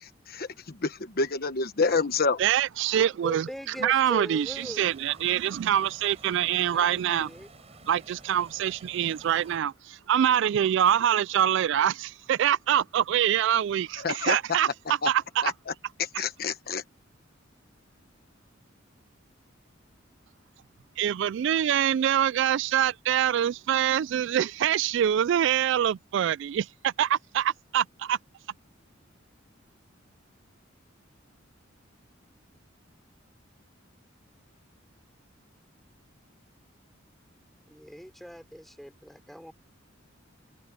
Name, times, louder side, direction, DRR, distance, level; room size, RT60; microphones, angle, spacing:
voice 1, 1.2-2.4 14.0-14.4 15.0-15.1 15.4-15.5 16.2-16.8, left 4 dB, 50° left, 1.2 m, -27 dB
voice 2, 2.4-3.5 3.8-7.3 7.9-15.5 16.1-16.2 21.0-28.2, right 10 dB, 65° right, 0.3 m, -25 dB
voice 3, 3.1-5.0 6.7-7.5 37.7-39.5, equal, ahead, 3.5 m, -41 dB
sound 1, 4.4-9.6, right 2 dB, 30° right, 6.6 m, -52 dB
open air
head